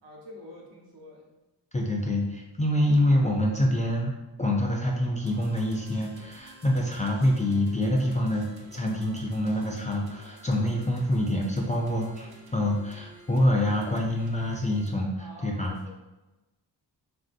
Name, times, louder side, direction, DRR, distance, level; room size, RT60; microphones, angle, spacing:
voice 1, 0.0-1.3 15.2-15.9, left 1 dB, 75° right, -2 dB, 1.0 m, -47 dB
voice 2, 1.7-15.8, left 1 dB, 20° left, -1 dB, 0.3 m, -26 dB
sound 1, 5.3-14.9, right 2 dB, 60° right, 0.6 m, -52 dB
3.2 x 2.6 x 2.5 m, 1.1 s
wide cardioid pair, 85°, 43 cm